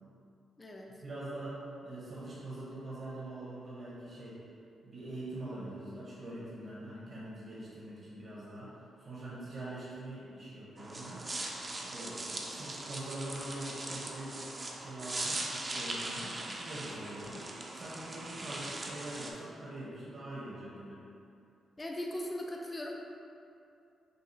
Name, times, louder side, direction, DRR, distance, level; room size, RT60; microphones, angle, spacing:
voice 1, 1.0-4.4 4.8-8.7 9.0-11.3 11.7-14.5 14.7-17.5 17.7-21.0, right 1 dB, 55° right, -7 dB, 1.0 m, -43 dB
sound 1, 10.8-19.3, right 2 dB, 30° right, 0.5 m, -40 dB
voice 2, 21.8-22.9, left 1 dB, 20° left, -1 dB, 0.4 m, -38 dB
6.5 x 2.3 x 2.7 m, 2.6 s
cardioid pair, 100°, 0 cm